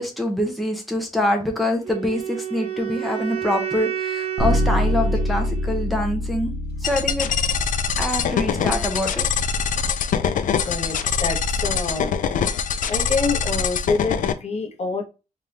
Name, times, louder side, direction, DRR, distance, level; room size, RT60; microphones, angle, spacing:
voice 1, 0.0-6.6 6.8-7.3 8.0-9.3, left 1 dB, ahead, 0.8 m, -25 dB
Wind instrument woodwind instrument, 1.8-5.9, right 9 dB, 45° right, 1.4 m, -30 dB
Bass guitar, 4.4-14.2, left 1 dB, 65° right, 1.2 m, -29 dB
sound 1, 6.8-14.3, left 7 dB, 70° left, 0.4 m, -23 dB
voice 2, 10.6-12.1 12.9-15.0, left 4 dB, 50° left, 0.9 m, -27 dB
3.6 x 3.3 x 2.8 m
wide cardioid pair, 130°, 14 cm